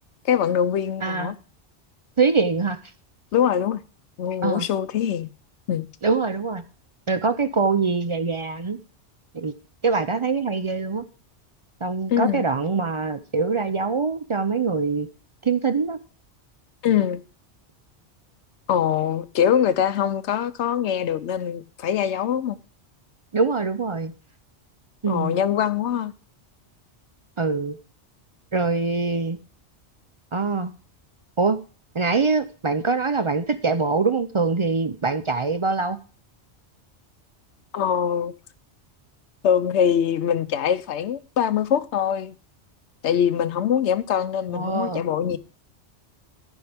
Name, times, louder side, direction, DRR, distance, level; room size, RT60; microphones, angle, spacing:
voice 1, 0.3-1.4 3.3-3.8 4.2-5.3 5.7-5.9 12.1-12.5 16.8-17.2 18.7-22.6 25.1-26.1 37.7-38.3 39.4-42.4 43.0-45.4, left 9 dB, 75° left, 1.0 m, -23 dB
voice 2, 1.0-1.3 2.2-2.8 4.4-4.6 6.0-6.6 7.1-8.8 9.3-9.5 9.8-11.0 11.8-15.1 15.4-16.0 23.3-24.1 25.0-25.4 27.4-27.8 28.5-29.4 30.3-30.7 31.4-31.6 31.9-36.0 44.5-45.0, right 4 dB, 45° right, 0.4 m, -23 dB
14.0 x 5.4 x 3.4 m
omnidirectional pair, 1.2 m